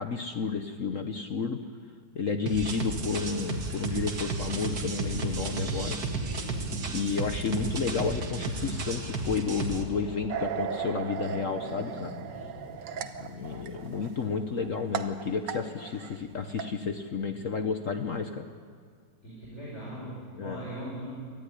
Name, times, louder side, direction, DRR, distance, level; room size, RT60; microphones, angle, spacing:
voice 1, 0.0-1.6 2.1-6.0 6.9-12.1 13.2-18.4 20.4-20.6, left 5 dB, 50° left, 7 dB, 1.1 m, -31 dB
sound 1, 2.5-9.8, right 3 dB, 50° right, 2.3 m, -33 dB
sound 2, 2.6-14.2, equal, 15° right, 5.3 m, -44 dB
sound 3, 10.3-16.2 16.5-16.7, right 7 dB, 70° right, 1.6 m, -36 dB
voice 2, 12.9-13.7 17.3-17.4 19.2-21.1, equal, 35° left, -5 dB, 5.3 m, -41 dB
24.5 x 15.0 x 10.0 m, 2.1 s
omnidirectional pair, 2.1 m